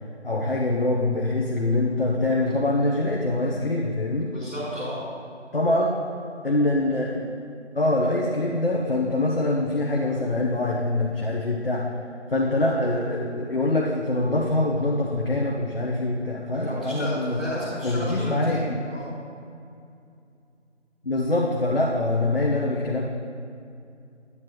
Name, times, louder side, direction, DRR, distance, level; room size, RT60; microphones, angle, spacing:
voice 1, 0.2-4.3 5.5-5.9 6.4-7.3 7.7-11.8 12.3-17.4 17.8-18.8 21.0-23.0, left 2 dB, 50° left, -3 dB, 0.9 m, -24 dB
voice 2, 4.3-5.0 16.7-19.1, equal, 5° right, -18 dB, 1.9 m, -33 dB
9.5 x 8.8 x 3.0 m, 2.5 s
figure-of-eight pair, 170°, 35 cm